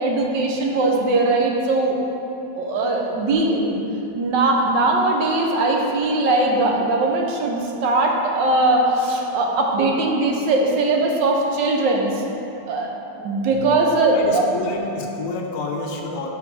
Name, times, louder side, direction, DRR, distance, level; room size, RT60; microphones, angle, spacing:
voice 1, 0.0-2.0 2.6-3.8 4.1-12.2 12.7-12.9 13.2-14.4, right 2 dB, 80° right, 0 dB, 1.5 m, -20 dB
voice 2, 14.1-16.3, left 3 dB, 55° left, 0 dB, 1.0 m, -29 dB
6.0 x 5.0 x 6.0 m, 3.0 s
omnidirectional pair, 1.9 m